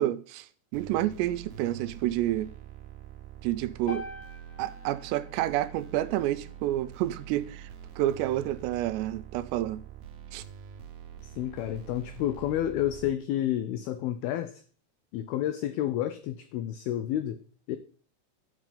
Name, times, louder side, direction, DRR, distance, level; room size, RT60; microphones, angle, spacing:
voice 1, 0.0-2.5 3.4-4.1 4.6-7.7 8.0-9.8 10.3-10.4, right 14 dB, 85° right, 2.8 m, -29 dB
sound 1, 0.7-13.1, right 9 dB, 70° right, 2.0 m, -46 dB
sound 2, 3.9-8.0, left 2 dB, 55° left, 3.5 m, -46 dB
voice 2, 11.2-14.6 15.1-17.8, left 12 dB, 80° left, 2.3 m, -30 dB
12.0 x 6.4 x 5.2 m
omnidirectional pair, 5.0 m